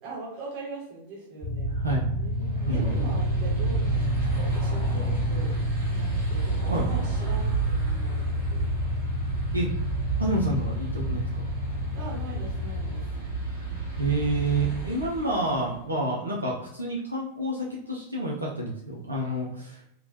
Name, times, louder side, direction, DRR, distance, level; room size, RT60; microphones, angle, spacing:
voice 1, 0.0-1.8 2.1-5.6 5.9-8.7 11.9-13.1, right 2 dB, 40° right, -5 dB, 1.3 m, -40 dB
sound 1, 1.4-13.1, equal, 15° right, 1.4 m, -29 dB
sound 2, 2.3-15.8, right 5 dB, 65° right, 1.1 m, -33 dB
voice 2, 2.6-3.0 6.7-6.9 9.5-9.7 10.2-11.4 14.0-19.8, right 2 dB, 80° right, -3 dB, 0.4 m, -28 dB
2.8 x 2.2 x 2.6 m, 0.79 s
figure-of-eight pair, 90°, 0 cm